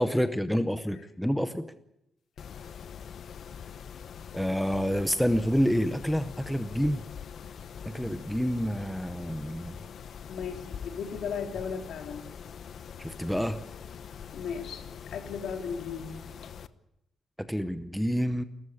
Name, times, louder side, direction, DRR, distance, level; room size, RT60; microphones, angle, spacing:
voice 1, 0.0-1.7 4.3-7.0 7.8-9.8 13.0-13.6 17.4-18.4, equal, ahead, 9 dB, 0.8 m, -28 dB
Mechanisms, 2.4-16.7, left 7 dB, 50° left, 0.9 m, -43 dB
voice 2, 10.3-12.3 14.3-14.8 15.1-16.2, left 6 dB, 80° left, 4 dB, 3.6 m, -36 dB
29.5 x 14.0 x 8.6 m, 0.84 s
wide cardioid pair, 180°, 0 cm